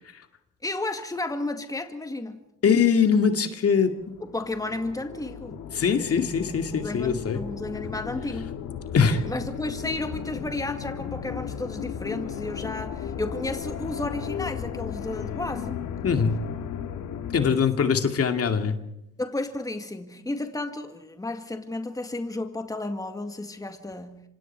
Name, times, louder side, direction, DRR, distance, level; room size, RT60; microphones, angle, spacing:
voice 1, 0.6-2.4 4.2-5.6 6.1-6.3 6.8-8.6 9.3-15.8 17.5-17.9 19.2-24.2, left 2 dB, 10° left, 2.0 m, -33 dB
voice 2, 2.6-3.9 5.7-7.4 8.9-9.2 16.0-16.4 17.3-18.8, left 6 dB, 50° left, 2.3 m, -22 dB
sound 1, 3.9-17.5, left 8 dB, 80° left, 2.2 m, -35 dB
26.0 x 26.0 x 4.6 m
cardioid pair, 90°, 30 cm